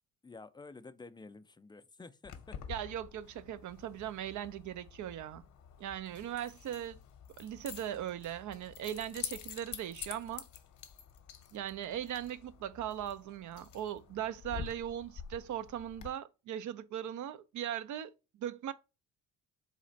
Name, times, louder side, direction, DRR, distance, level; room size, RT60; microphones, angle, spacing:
voice 1, 0.2-2.6, left 3 dB, 15° left, 0.4 m, -51 dB
Keys jangling, 2.2-16.1, left 8 dB, 55° left, 0.8 m, -48 dB
voice 2, 2.7-5.4 5.8-7.0 7.4-10.5 11.5-18.7, right 11 dB, 55° right, 0.5 m, -39 dB
4.2 x 2.4 x 4.0 m
supercardioid pair, 65°, 36 cm